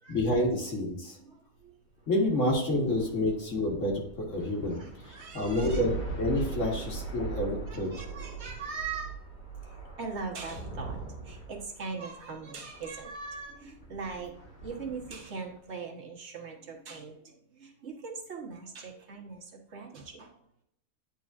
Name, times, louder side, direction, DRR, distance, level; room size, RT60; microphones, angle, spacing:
voice 1, 0.1-1.2 2.1-4.8 5.1-7.9, left 1 dB, 65° left, -1 dB, 1.8 m, -29 dB
voice 2, 1.0-1.7 4.7-5.8 6.7-6.8 7.6-9.2 9.6-14.3 14.6-20.3, right 4 dB, 55° right, 1 dB, 1.5 m, -41 dB
sound 1, 2.0-15.6, right 4 dB, 40° left, 1.7 m, -40 dB
9.9 x 4.2 x 2.5 m, 0.75 s
omnidirectional pair, 1.4 m